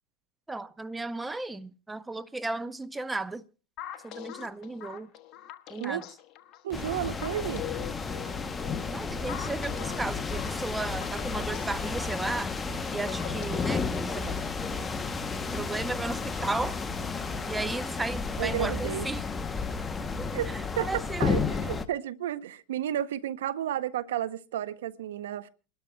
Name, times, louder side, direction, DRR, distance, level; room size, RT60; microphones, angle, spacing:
voice 1, 0.5-3.5 4.0-5.1 5.7-6.0 8.9-12.5 12.9-14.4 15.3-16.8 17.5-19.2 20.5-21.5, right 2 dB, 10° right, 0.6 m, -35 dB
sound 1, 3.8-14.8, left 13 dB, 50° left, 1.1 m, -44 dB
voice 2, 6.6-7.6 18.4-19.1 20.3-20.5 20.8-20.9 21.2-25.5, right 11 dB, 85° right, 0.7 m, -32 dB
sound 2, 6.7-21.9, left 4 dB, 20° left, 0.8 m, -32 dB
28.0 x 12.5 x 2.2 m
hypercardioid pair, 105°, 0 cm